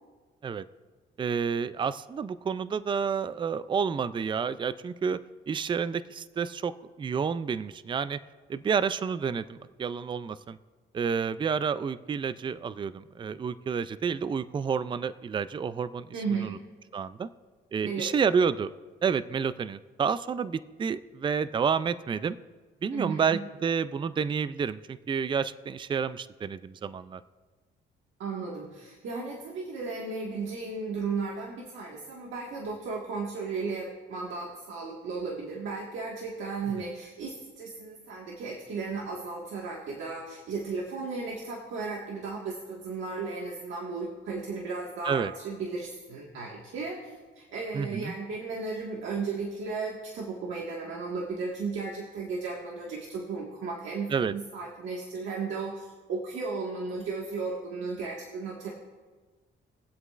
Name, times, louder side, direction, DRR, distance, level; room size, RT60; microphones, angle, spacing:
voice 1, 1.2-5.2 5.5-6.7 7.0-8.2 8.5-10.6 10.9-16.1 16.4-16.6 16.9-17.3 17.7-18.7 19.0-22.4 22.8-27.2 45.0-45.3 47.7-48.1 54.1-54.3, right 6 dB, 25° right, 15 dB, 0.4 m, -29 dB
voice 2, 16.1-16.7 17.8-18.1 22.9-23.4 28.2-58.7, right 4 dB, 75° right, -2 dB, 1.7 m, -35 dB
22.0 x 8.0 x 2.5 m, 1.3 s
cardioid pair, 90°, 20 cm